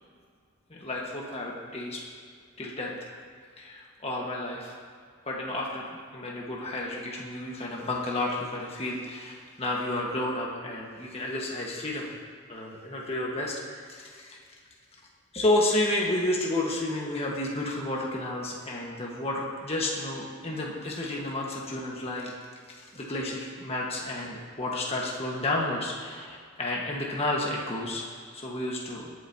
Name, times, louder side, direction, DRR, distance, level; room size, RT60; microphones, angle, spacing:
voice 1, 0.7-2.0 2.6-3.1 3.6-4.8 5.2-5.8 6.1-12.1 12.5-14.4 15.3-22.3 22.8-29.1, left 1 dB, 30° left, -3 dB, 1.4 m, -31 dB
21.5 x 8.2 x 2.8 m, 2.1 s
head